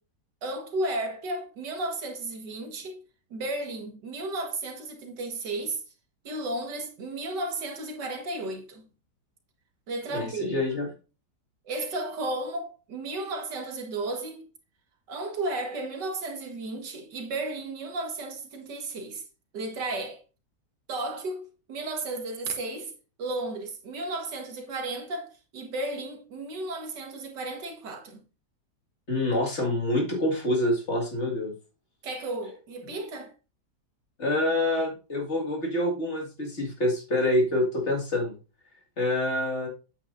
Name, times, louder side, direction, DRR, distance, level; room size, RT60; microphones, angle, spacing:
voice 1, 0.4-3.0 3.3-5.8 6.2-8.9 9.9-10.6 11.7-14.5 15.1-19.2 19.5-20.2 20.9-22.9 23.2-28.2 32.0-33.3, right 2 dB, 90° right, 2.1 m, -33 dB
voice 2, 10.1-10.9 29.1-31.5 34.2-38.3 39.0-39.7, left 1 dB, 40° left, 2.3 m, -26 dB
8.7 x 8.2 x 2.6 m
omnidirectional pair, 1.8 m